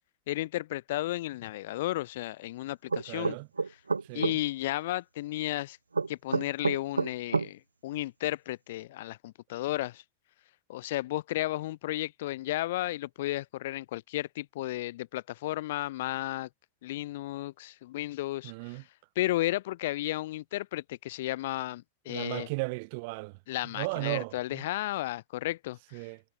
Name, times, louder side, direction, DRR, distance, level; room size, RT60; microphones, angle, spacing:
voice 1, 0.3-3.4 4.1-5.8 6.1-10.0 10.7-16.5 16.8-18.8 19.2-22.5 23.5-25.8, left 16 dB, 55° left, 0.9 m, -33 dB
sound 1, 2.9-4.4 5.9-7.5, right 4 dB, 75° right, 0.8 m, -28 dB
voice 2, 3.1-3.5 4.1-4.4 18.4-18.8 22.1-23.3 23.8-24.6 25.9-26.2, right 28 dB, 45° right, 0.5 m, -35 dB
figure-of-eight pair, 90°, 0 cm